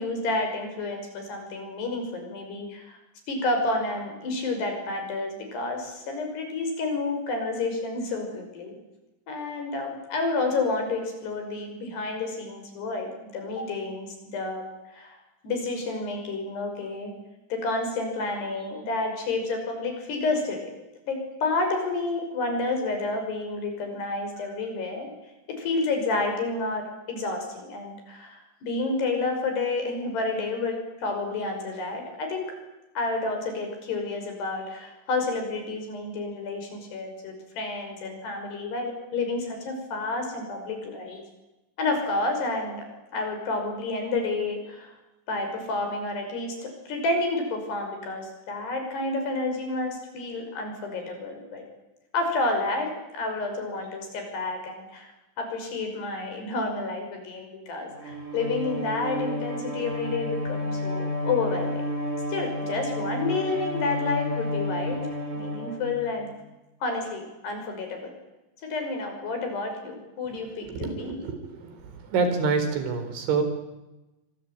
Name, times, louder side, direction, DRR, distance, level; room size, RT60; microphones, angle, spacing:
voice 1, 0.0-3.0 3.3-8.8 9.3-14.7 14.9-15.2 15.4-17.1 17.5-20.7 21.1-25.1 25.5-32.5 33.0-41.2 41.8-42.9 43.1-44.9 45.3-51.6 52.1-55.1 55.4-61.8 62.3-65.1 65.3-66.3 66.8-68.1 68.6-71.2, left 3 dB, 60° left, 5 dB, 7.7 m, -30 dB
Bowed string instrument, 57.9-66.3, left 1 dB, 20° right, 1.9 m, -31 dB
voice 2, 70.6-73.4, right 4 dB, 75° right, 8 dB, 6.5 m, -27 dB
25.5 x 25.0 x 9.2 m, 1.0 s
omnidirectional pair, 5.4 m